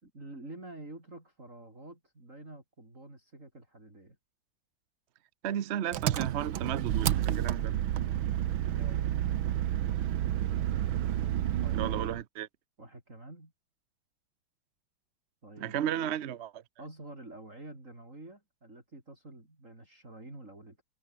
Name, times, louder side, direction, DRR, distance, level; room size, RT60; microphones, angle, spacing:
voice 1, 0.0-4.2 8.6-9.1 11.6-12.1 12.8-13.5 15.4-16.1 16.8-20.8, right 2 dB, 35° right, 6.5 m, -48 dB
voice 2, 5.4-7.7 11.7-12.5 15.6-16.5, right 10 dB, 60° right, 0.7 m, -34 dB
Engine, 5.9-12.2, right 11 dB, 80° right, 1.8 m, -30 dB
omnidirectional pair, 2.2 m